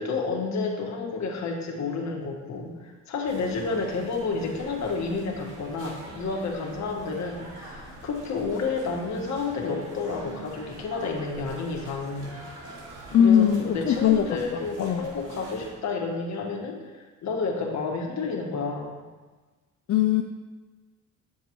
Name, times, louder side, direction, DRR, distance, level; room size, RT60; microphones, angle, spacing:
voice 1, 0.0-12.9 13.2-17.0 17.2-19.0, left 4 dB, 65° left, 1 dB, 1.6 m, -30 dB
sound 1, 3.2-15.7, right 1 dB, 85° right, 2.8 m, -44 dB
voice 2, 13.1-14.2 14.8-15.1 19.9-20.2, left 9 dB, 50° left, 6 dB, 0.5 m, -20 dB
10.0 x 7.1 x 3.1 m, 1.3 s
cardioid pair, 90°, 30 cm